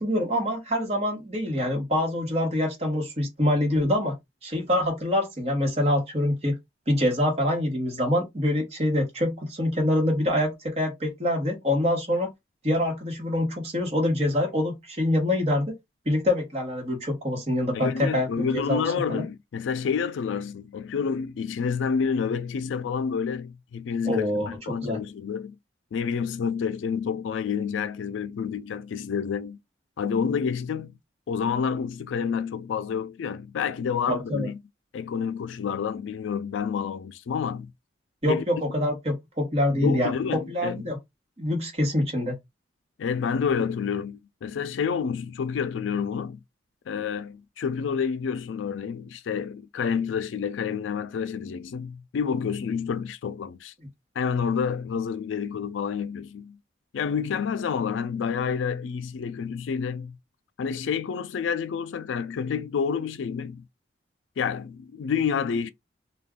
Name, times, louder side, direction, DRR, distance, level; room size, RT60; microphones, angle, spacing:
voice 1, 0.0-4.1 4.4-6.6 6.9-12.3 12.6-15.7 16.1-18.8 19.1-19.2 24.0-25.0 34.1-34.5 38.2-40.1 40.5-41.0 41.4-42.3, left 1 dB, 35° right, 1.1 m, -25 dB
voice 2, 17.7-25.6 25.9-29.6 30.0-31.0 31.3-34.6 34.9-37.7 38.3-38.4 39.7-40.9 43.0-46.4 46.9-53.7 54.2-56.6 56.9-60.2 60.6-63.7 64.4-65.7, left 6 dB, 80° left, 0.3 m, -29 dB
2.5 x 2.2 x 3.6 m
head